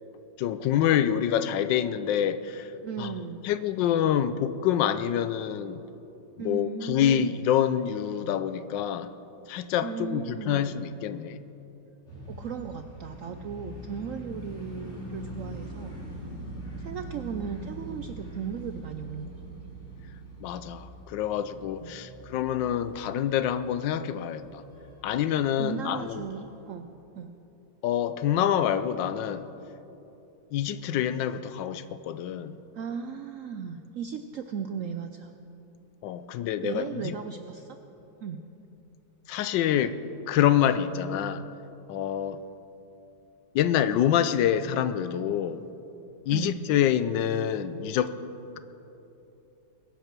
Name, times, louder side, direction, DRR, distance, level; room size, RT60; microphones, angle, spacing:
voice 1, 0.4-2.7 3.0-3.1 3.4-5.8 6.4-9.1 9.5-11.4 20.4-24.6 25.0-26.3 27.8-29.5 30.5-32.5 36.0-37.2 39.3-40.0 40.3-41.5 41.9-42.4 43.5-45.6 46.3-48.1, left 10 dB, 80° left, 12 dB, 1.3 m, -26 dB
voice 2, 2.8-3.4 6.4-7.3 9.8-10.7 12.3-16.0 16.8-19.3 21.8-22.0 25.6-27.3 32.7-35.4 36.6-37.8 38.2-38.4 46.3-46.6, right 6 dB, 75° right, 7 dB, 0.7 m, -36 dB
sound 1, 12.1-26.6, right 1 dB, 35° left, 4.2 m, -43 dB
21.5 x 8.3 x 6.1 m, 2.9 s
omnidirectional pair, 2.0 m